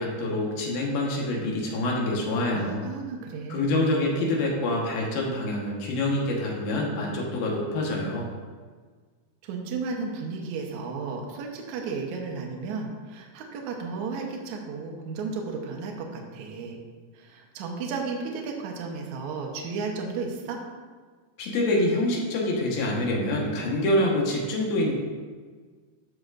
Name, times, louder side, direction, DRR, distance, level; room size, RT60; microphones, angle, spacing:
voice 1, 0.0-2.8 3.5-8.3 21.4-24.9, left 1 dB, 70° left, -2 dB, 2.9 m, -26 dB
voice 2, 2.5-4.2 9.4-16.8 17.1-20.6, right 4 dB, 75° right, 1 dB, 1.8 m, -34 dB
13.0 x 6.0 x 2.5 m, 1.5 s
omnidirectional pair, 4.7 m